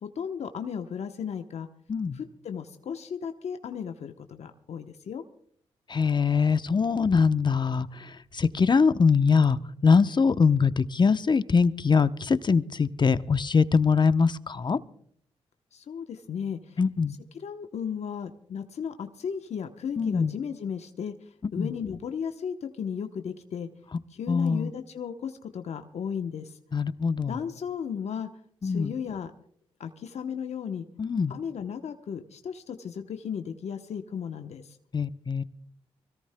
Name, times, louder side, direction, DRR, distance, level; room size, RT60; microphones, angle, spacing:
voice 1, 0.0-1.7 2.1-5.2 15.7-16.8 17.3-21.1 21.5-23.7 24.1-26.6 27.3-28.3 28.6-29.3 29.8-30.9 31.3-34.8, left 7 dB, 70° left, 0.9 m, -35 dB
voice 2, 1.9-2.2 5.9-14.8 16.8-17.2 20.0-20.3 21.6-21.7 24.3-24.7 26.7-27.4 28.6-28.9 31.0-31.3 34.9-35.4, left 5 dB, 40° left, 0.8 m, -23 dB
24.5 x 17.5 x 2.2 m
supercardioid pair, 50°, 12 cm